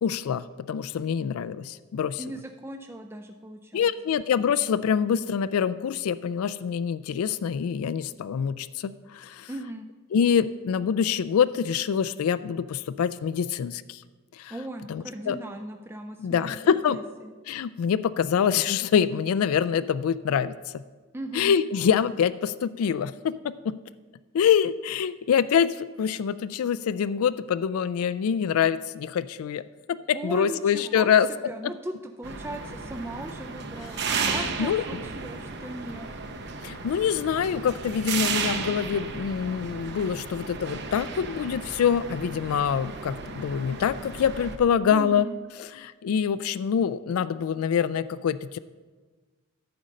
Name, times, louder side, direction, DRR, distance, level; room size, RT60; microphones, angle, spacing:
voice 1, 0.0-2.2 3.7-9.5 10.1-14.0 14.3-14.5 14.9-15.4 16.2-17.0 17.5-20.8 21.3-23.8 24.3-29.6 29.9-31.3 34.1-34.8 36.6-45.3 45.6-48.6, left 7 dB, 85° left, 14 dB, 0.3 m, -25 dB
voice 2, 2.2-3.9 9.5-9.9 14.5-16.6 16.9-17.3 21.1-21.6 30.1-31.1 31.4-36.1 44.9-45.4, right 1 dB, 10° right, 6 dB, 0.3 m, -38 dB
sound 1, 32.2-44.6, right 5 dB, 50° right, 0.7 m, -34 dB
11.0 x 5.1 x 7.5 m, 1.4 s
head